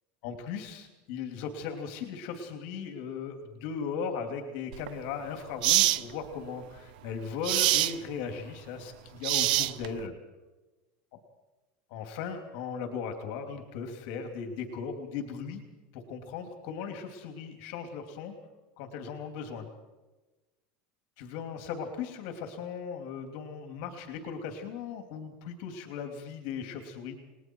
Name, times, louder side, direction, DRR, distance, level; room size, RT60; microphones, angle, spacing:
voice 1, 0.2-10.1 11.1-11.2 11.9-15.6 15.9-18.4 18.8-19.6 21.2-27.2, left 6 dB, 65° left, 5 dB, 2.9 m, -37 dB
sound 1, 4.7-4.9 5.6-6.0 7.4-7.9 9.2-10.0, right 17 dB, 80° right, 0.7 m, -24 dB
29.5 x 20.5 x 4.7 m, 1.1 s
supercardioid pair, 145°, 5 cm